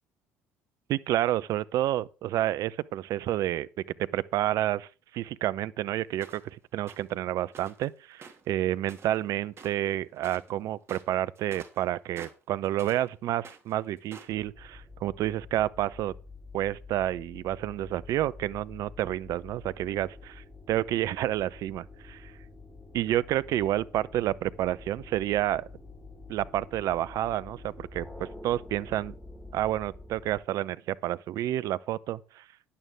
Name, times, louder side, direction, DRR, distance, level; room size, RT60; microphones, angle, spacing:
voice 1, 0.9-3.7 4.1-4.9 5.1-16.1 16.5-22.3 22.9-25.7 26.3-29.1 29.5-32.4, right 13 dB, 55° right, 0.7 m, -29 dB
sound 1, 6.2-6.5 6.9-7.1 7.5-7.9 8.1-9.3 9.5-9.9 10.2-10.5 10.8-13.1 13.4-14.4, right 5 dB, 40° right, 3.0 m, -48 dB
sound 2, 14.3-30.4, left 3 dB, 15° left, 4.0 m, -48 dB
11.5 x 11.0 x 3.5 m
figure-of-eight pair, 55°, 7 cm